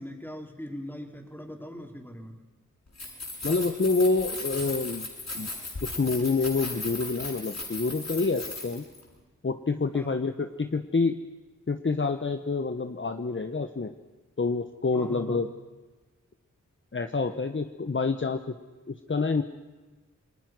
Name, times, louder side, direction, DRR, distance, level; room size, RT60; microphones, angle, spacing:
voice 1, 0.0-2.4 9.9-10.2 14.9-15.4, equal, 5° left, 2 dB, 4.3 m, -40 dB
Keys jangling, 2.9-9.0, left 2 dB, 60° left, 7.8 m, -37 dB
voice 2, 3.4-5.1 5.3-5.5 5.8-8.9 9.4-11.2 11.7-13.9 14.4-15.5 16.9-18.5 18.9-19.4, left 4 dB, 40° left, 8 dB, 1.1 m, -27 dB
28.5 x 21.5 x 6.2 m, 1.2 s
wide cardioid pair, 60°, 31 cm